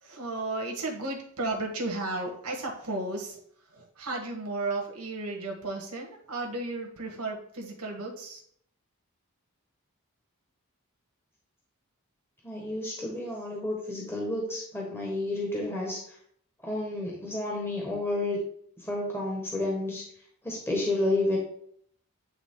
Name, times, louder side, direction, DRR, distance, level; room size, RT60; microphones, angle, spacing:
voice 1, 0.0-8.4, right 2 dB, 90° right, 1 dB, 1.4 m, -34 dB
voice 2, 12.4-16.0 16.6-18.4 18.9-20.0 20.4-21.4, left 2 dB, 10° left, -3 dB, 1.3 m, -30 dB
9.2 x 3.6 x 3.7 m, 0.65 s
head